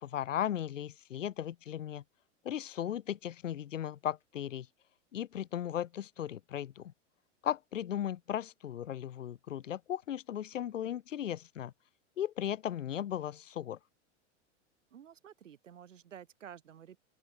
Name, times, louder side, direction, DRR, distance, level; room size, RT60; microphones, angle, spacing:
voice 1, 0.0-2.0 2.4-4.7 5.1-6.9 7.4-11.7 12.2-13.8, left 10 dB, 85° left, 1.3 m, -36 dB
voice 2, 14.9-17.0, right 9 dB, 85° right, 5.5 m, -51 dB
open air
hypercardioid pair, 105°, 37 cm